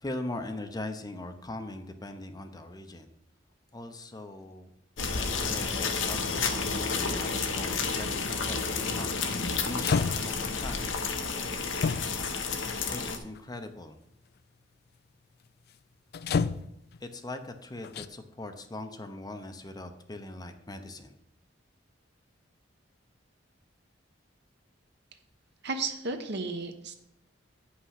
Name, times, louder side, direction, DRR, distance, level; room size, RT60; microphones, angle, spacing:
voice 1, 0.0-3.1 3.7-4.7 5.1-10.9 12.9-14.0 17.0-21.2, left 2 dB, 20° left, 7 dB, 0.7 m, -41 dB
sound 1, 5.0-13.2, left 4 dB, 75° left, 1.0 m, -31 dB
sound 2, 9.8-10.5 11.8-12.4 13.4-13.5 16.1-17.0 17.8-18.1, left 5 dB, 55° left, 0.4 m, -29 dB
voice 2, 25.6-27.0, right 3 dB, 60° right, 6 dB, 1.1 m, -33 dB
8.9 x 5.8 x 5.7 m, 0.79 s
head